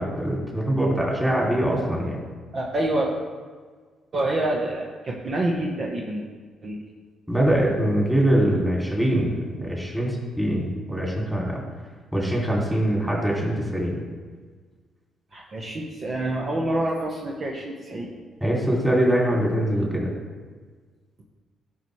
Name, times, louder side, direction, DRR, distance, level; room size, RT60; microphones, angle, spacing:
voice 1, 0.0-2.2 7.3-11.6 12.1-13.9 18.4-20.1, right 1 dB, 5° right, -3 dB, 2.7 m, -23 dB
voice 2, 2.5-3.1 4.1-6.2 6.6-6.8 15.3-18.1, right 1 dB, 45° right, -2 dB, 1.1 m, -27 dB
12.5 x 5.6 x 3.2 m, 1.5 s
cardioid pair, 90°, 0 cm